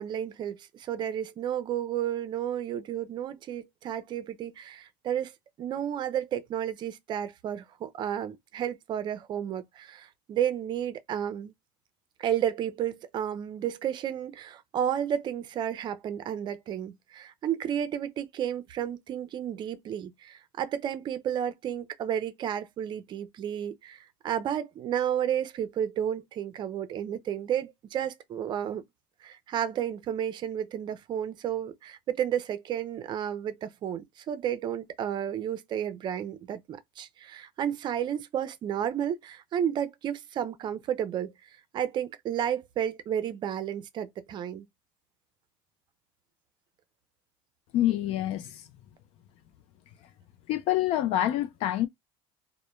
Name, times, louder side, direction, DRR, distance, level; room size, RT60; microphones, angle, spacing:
voice 1, 0.0-11.5 12.2-28.8 29.2-41.3 41.7-44.7, right 9 dB, 40° right, 0.5 m, -32 dB
voice 2, 47.7-48.6 50.5-51.9, left 13 dB, 60° left, 0.4 m, -26 dB
2.1 x 2.1 x 3.0 m
supercardioid pair, 115°, 12 cm